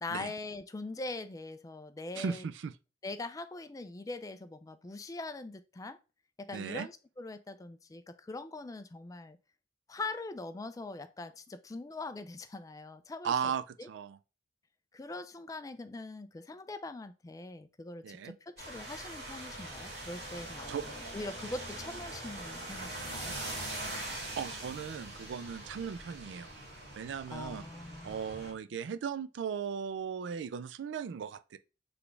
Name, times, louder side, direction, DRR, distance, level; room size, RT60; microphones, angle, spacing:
voice 1, 0.0-2.4 3.0-6.0 6.4-9.4 9.9-13.3 13.8-13.9 14.9-23.4 27.3-28.2, left 2 dB, 20° left, 0.3 m, -42 dB
voice 2, 2.2-2.7 6.5-6.9 13.2-14.2 18.0-18.4 20.7-20.8 24.4-26.5 27.0-27.6 28.0-31.6, right 7 dB, 80° right, 0.3 m, -37 dB
sound 1, 18.6-28.5, right 1 dB, 60° right, 2.0 m, -42 dB
4.0 x 3.4 x 3.2 m
head